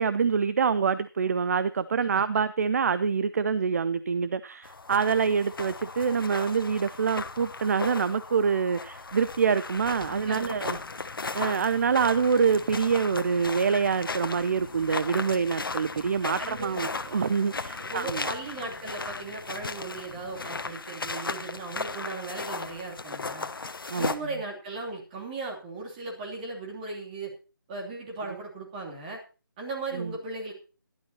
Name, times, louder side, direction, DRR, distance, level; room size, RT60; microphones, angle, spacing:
voice 1, 0.0-10.8 11.3-18.3 23.9-24.1 29.9-30.1, right 6 dB, 45° right, 0.5 m, -26 dB
sound 1, 4.6-24.2, left 4 dB, 80° left, 1.1 m, -36 dB
sound 2, 9.7-20.7, left 5 dB, 50° left, 3.3 m, -49 dB
voice 2, 10.1-10.8 16.4-16.9 17.8-23.5 24.0-27.3 27.7-29.2 29.6-30.5, right 3 dB, 25° right, 3.1 m, -37 dB
16.0 x 11.5 x 2.9 m
figure-of-eight pair, 165°, 12 cm